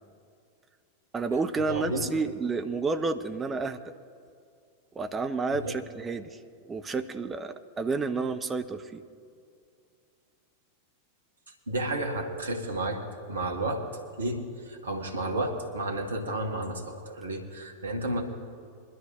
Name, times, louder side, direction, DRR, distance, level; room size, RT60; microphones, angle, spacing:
voice 1, 1.1-3.9 4.9-6.4 6.7-9.0, right 4 dB, 15° right, 8 dB, 0.7 m, -30 dB
voice 2, 1.7-2.1 5.6-5.8 11.7-13.0 13.3-13.8 14.2-18.2, right 1 dB, 70° right, 4 dB, 1.6 m, -31 dB
22.5 x 12.0 x 3.0 m, 2.4 s
figure-of-eight pair, 90°, 0 cm